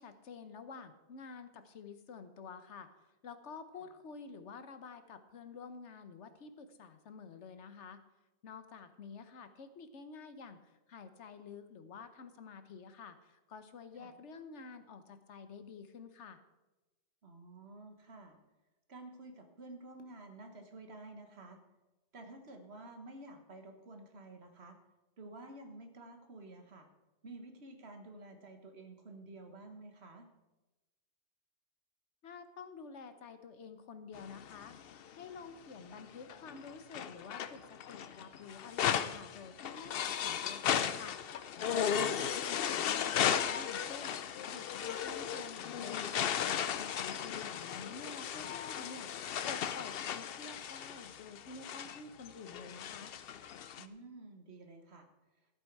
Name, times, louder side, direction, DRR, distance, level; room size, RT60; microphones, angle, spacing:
voice 1, 0.0-2.9 3.2-8.0 8.4-10.6 10.9-16.4 32.2-34.7 35.2-41.2 41.6-44.1 44.5-46.7 47.0-49.1 49.5-53.1, left 5 dB, 85° left, 10 dB, 1.2 m, -49 dB
voice 2, 17.2-18.4 18.9-21.6 22.1-24.8 25.2-26.9 27.2-30.3 44.4-44.7 53.8-55.1, right 2 dB, 65° right, 5 dB, 1.7 m, -51 dB
sound 1, 34.2-35.3 35.9-53.8, left 9 dB, 60° left, 0.8 m, -36 dB
14.0 x 8.3 x 4.6 m, 1.1 s
omnidirectional pair, 1.2 m